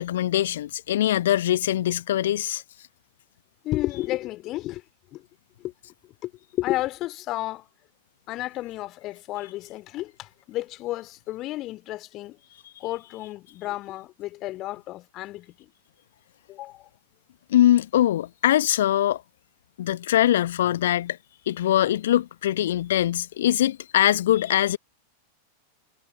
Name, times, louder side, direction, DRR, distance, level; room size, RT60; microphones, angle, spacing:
voice 1, 0.0-2.6 17.5-19.2 19.8-21.2 21.5-24.8, left 12 dB, 60° left, 1.4 m, -22 dB
voice 2, 3.6-4.8 5.1-5.2 5.6-5.7 6.2-6.3 6.6-7.7 8.3-12.4 12.8-15.5 16.5-16.9, left 16 dB, 35° left, 2.9 m, -32 dB
figure-of-eight pair, 90°, 0 cm